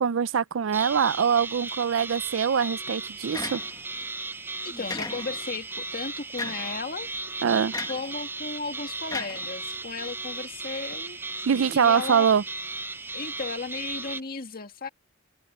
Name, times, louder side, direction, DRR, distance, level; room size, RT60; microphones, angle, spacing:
voice 1, 0.0-3.6 7.4-7.7 11.5-12.4, right 7 dB, 70° right, 0.4 m, -23 dB
sound 1, 0.7-14.2, right 3 dB, 10° right, 0.5 m, -36 dB
sound 2, 3.3-4.0 4.9-5.6 6.4-6.8 7.7-8.1 9.1-10.0, left 3 dB, 20° left, 1.0 m, -36 dB
voice 2, 4.6-7.1 7.9-11.2 11.7-12.3 13.1-14.9, left 4 dB, 45° left, 1.9 m, -35 dB
head